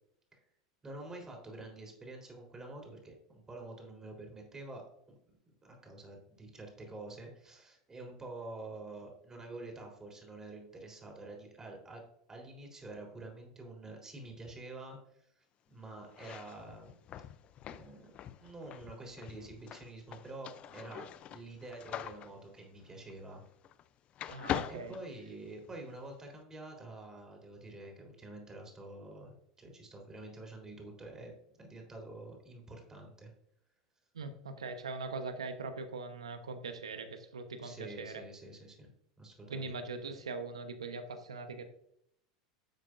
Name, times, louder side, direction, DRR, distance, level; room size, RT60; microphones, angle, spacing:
voice 1, 0.8-5.4 5.6-12.0 12.3-17.0 17.7-18.1 18.4-23.4 24.7-33.3 37.6-38.9 39.2-39.8, right 2 dB, 20° right, 1 dB, 3.6 m, -48 dB
sound 1, 16.1-23.9 24.2-25.8, left 10 dB, 40° left, 0.5 m, -43 dB
voice 2, 24.3-24.9 34.1-38.2 39.5-41.7, right 3 dB, 90° right, 8 dB, 1.0 m, -41 dB
10.5 x 7.6 x 2.6 m, 0.73 s
hypercardioid pair, 90°, 3 cm